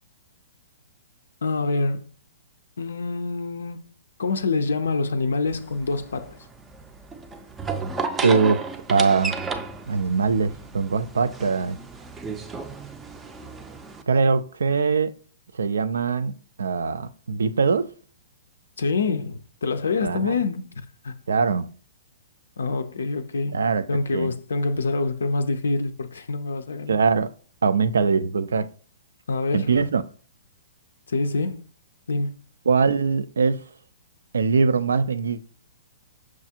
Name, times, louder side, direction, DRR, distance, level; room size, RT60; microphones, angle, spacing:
voice 1, 1.4-2.1 2.8-3.8 4.2-6.5 18.8-21.1 22.6-23.6 23.9-27.0 29.3-29.8 31.1-31.6 32.1-32.4, left 3 dB, 75° left, 0.4 m, -26 dB
sound 1, 5.5-14.0, right 4 dB, 15° right, 0.5 m, -34 dB
voice 2, 8.2-8.6 8.9-9.4 9.9-11.8 14.1-15.1 15.5-17.9 20.0-20.4 21.3-21.7 23.5-23.9 24.1-24.3 26.9-27.3 27.6-28.7 29.5-30.0 32.7-33.6 34.3-35.4, right 5 dB, 75° right, 0.4 m, -22 dB
6.0 x 2.4 x 2.7 m
figure-of-eight pair, 120°, 0 cm